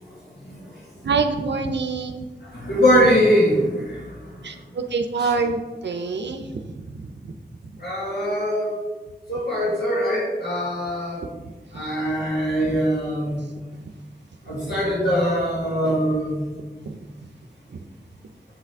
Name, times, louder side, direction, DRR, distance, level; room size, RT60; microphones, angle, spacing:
voice 1, 1.0-2.3 4.4-7.3 7.7-7.8 11.7-11.8 13.8-13.9 14.5-14.8 16.8-17.0 17.7-17.8, right 4 dB, 85° right, 6 dB, 0.5 m, -27 dB
voice 2, 2.5-4.0 5.2-5.3 7.8-8.7 9.3-11.3 11.7-13.4 14.5-16.5, equal, 70° left, -7 dB, 1.8 m, -22 dB
8.1 x 5.7 x 3.5 m, 1.3 s
wide cardioid pair, 45°, 18 cm